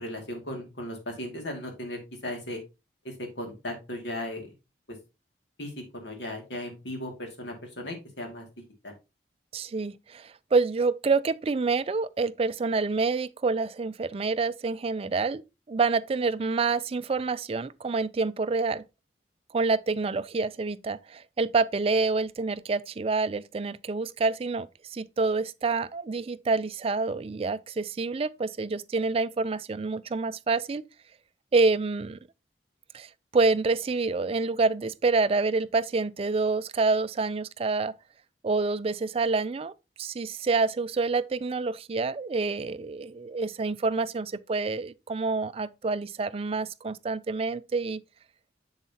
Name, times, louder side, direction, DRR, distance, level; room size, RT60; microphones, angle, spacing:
voice 1, 0.0-2.6 3.0-4.5 4.9-5.0 5.6-8.5 8.8-8.9, left 1 dB, 80° left, 2.3 m, -37 dB
voice 2, 9.5-15.4 15.7-18.8 19.5-30.8 31.5-32.2 32.9-37.9 38.4-48.0, right 4 dB, 35° right, 0.4 m, -27 dB
7.3 x 7.2 x 2.8 m
head